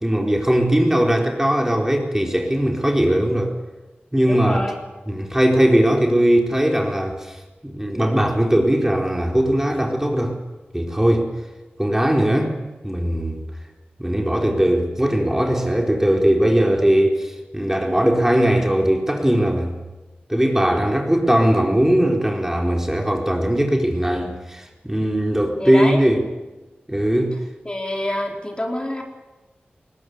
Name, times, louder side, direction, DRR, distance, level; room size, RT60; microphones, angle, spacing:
voice 1, 0.0-3.5 4.1-4.6 5.1-10.4 10.7-11.3 11.8-12.5 12.8-13.4 14.0-19.8 20.3-26.3 26.9-27.4, right 1 dB, 10° right, 2 dB, 4.3 m, -19 dB
voice 2, 4.3-4.7 25.6-26.1 27.6-29.0, left 1 dB, 25° left, 1 dB, 4.3 m, -26 dB
21.0 x 19.0 x 9.7 m, 1.1 s
cardioid pair, 45°, 4 cm